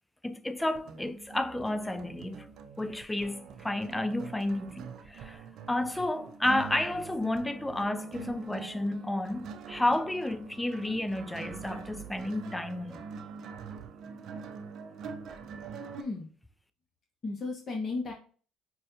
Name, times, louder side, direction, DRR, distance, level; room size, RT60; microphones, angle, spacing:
voice 1, 0.2-2.5 2.8-13.0, left 1 dB, 10° left, 0.4 m, -31 dB
sound 1, 0.6-16.0, right 6 dB, 60° right, 0.5 m, -44 dB
voice 2, 16.0-16.3 17.2-18.1, left 3 dB, 35° left, 0.8 m, -34 dB
5.3 x 2.3 x 2.6 m
supercardioid pair, 80°, 0 cm